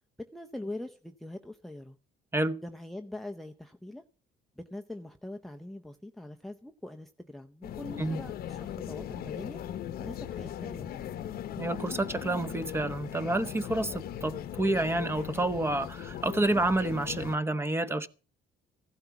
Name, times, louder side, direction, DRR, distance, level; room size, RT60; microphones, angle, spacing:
voice 1, 0.2-2.0 2.6-4.0 4.6-9.6 10.0-11.1, left 1 dB, ahead, 0.7 m, -43 dB
sound 1, 7.6-17.4, left 10 dB, 65° left, 1.0 m, -39 dB
voice 2, 11.6-18.1, right 2 dB, 15° right, 1.1 m, -29 dB
15.5 x 12.0 x 5.9 m
cardioid pair, 110°, 17 cm